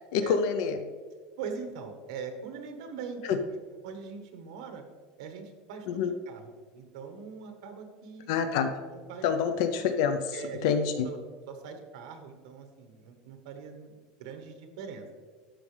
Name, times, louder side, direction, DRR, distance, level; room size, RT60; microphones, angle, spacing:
voice 1, 0.1-0.8 3.3-3.4 5.9-6.1 8.3-8.7 9.2-10.4 10.6-11.1, left 7 dB, 60° left, 8 dB, 0.5 m, -26 dB
voice 2, 1.4-3.4 3.8-4.8 5.2-8.3 8.9-9.3 10.3-10.7 11.0-11.2 11.5-13.9 14.2-15.1, right 5 dB, 80° right, 5 dB, 1.2 m, -42 dB
12.5 x 5.0 x 3.3 m, 1.5 s
cardioid pair, 180°, 3 cm